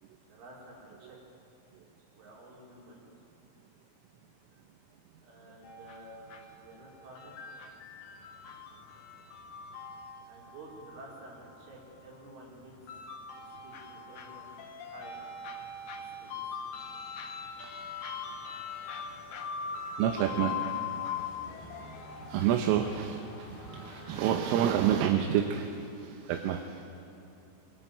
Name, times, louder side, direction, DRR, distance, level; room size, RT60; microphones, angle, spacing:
voice 1, 0.3-1.2 2.1-3.1 5.2-7.6 10.2-12.7 13.3-14.6 14.9-15.2 15.9-16.6, right 1 dB, 70° right, -3 dB, 7.5 m, -51 dB
Ice Cream Man, 5.6-25.0, left 6 dB, 65° left, 3.0 m, -42 dB
voice 2, 20.0-20.6 22.3-26.8, right 10 dB, 85° right, 5 dB, 3.7 m, -28 dB
24.0 x 23.5 x 9.1 m, 2.8 s
omnidirectional pair, 5.8 m